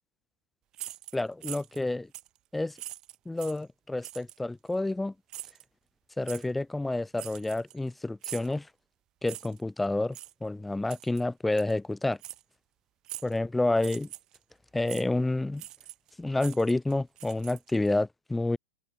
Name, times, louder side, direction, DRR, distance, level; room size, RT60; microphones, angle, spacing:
sound 1, 0.7-1.8 2.1-2.4 2.7-3.6 4.0-4.4 5.3-5.6 6.2-6.4 7.1-7.9 8.2-8.5 9.2-9.6 10.1-10.3 10.9-11.2 11.6-11.7 12.2-12.4 13.0-13.4 13.8-14.4 14.9-15.0 15.6-16.1 16.4-17.9, right 14 dB, 25° right, 2.5 m, -43 dB
voice 1, 1.1-2.1 2.5-2.7 3.3-5.1 6.2-8.7 9.2-10.2 10.4-12.2 13.2-14.1 14.7-15.6 16.2-18.6, left 2 dB, 5° left, 0.4 m, -29 dB
supercardioid pair, 170°, 2 cm